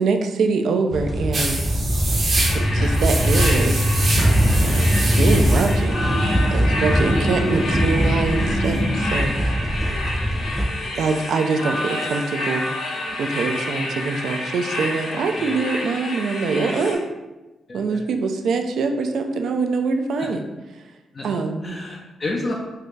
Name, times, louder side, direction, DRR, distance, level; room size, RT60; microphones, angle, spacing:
voice 1, 0.0-1.6 2.5-3.9 4.6-6.0 6.5-9.7 10.9-12.6 13.2-17.0 17.7-20.4 21.2-21.8, right 4 dB, 70° right, 5 dB, 0.3 m, -24 dB
sound 1, 0.9-10.6, equal, 5° right, 0.5 m, -21 dB
sound 2, 1.3-8.8, right 2 dB, 55° right, 0.7 m, -27 dB
sound 3, 2.4-17.0, left 1 dB, 70° left, 0.8 m, -29 dB
voice 2, 9.5-10.4 13.4-13.5 15.3-15.6 17.7-18.0 20.2-20.3 21.1-21.3 21.6-22.5, left 2 dB, 45° left, -3 dB, 0.5 m, -32 dB
2.7 x 2.4 x 3.6 m, 1.1 s
hypercardioid pair, 45°, 0 cm